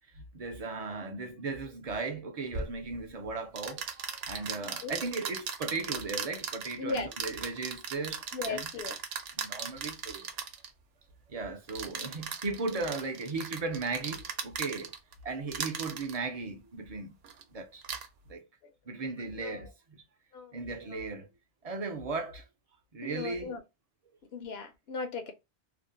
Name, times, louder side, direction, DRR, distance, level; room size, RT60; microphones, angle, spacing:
voice 1, 0.1-8.7 9.4-10.3 11.3-14.9 15.2-17.2 17.5-17.8 18.3-18.4 18.9-20.0 20.5-21.3 21.6-22.5 22.9-23.5, right 3 dB, 50° right, 0.4 m, -36 dB
sound 1, 2.5-2.7 3.6-10.7 11.7-15.1 15.5-16.2 17.2-17.4 17.8-18.1, right 6 dB, 75° right, 0.8 m, -38 dB
voice 2, 6.8-7.1 8.3-9.0 19.4-19.6 20.3-20.5 20.9-21.1 23.0-23.6 24.3-25.3, left 4 dB, 75° left, 0.8 m, -37 dB
2.5 x 2.0 x 2.5 m
omnidirectional pair, 1.1 m